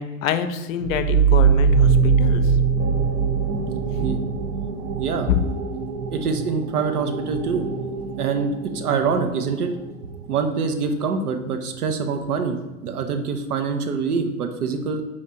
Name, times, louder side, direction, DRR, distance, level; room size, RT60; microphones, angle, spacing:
voice 1, 0.0-2.5 5.3-5.4, left 8 dB, 65° left, 9 dB, 0.5 m, -25 dB
sound 1, 0.8-10.2, right 6 dB, 35° right, 0.4 m, -22 dB
voice 2, 5.0-5.3 6.1-7.7 8.2-9.7 10.3-12.6 12.8-15.0, right 5 dB, 75° right, 6 dB, 0.7 m, -25 dB
4.3 x 2.5 x 4.2 m, 1.1 s
hypercardioid pair, 100°, 45 cm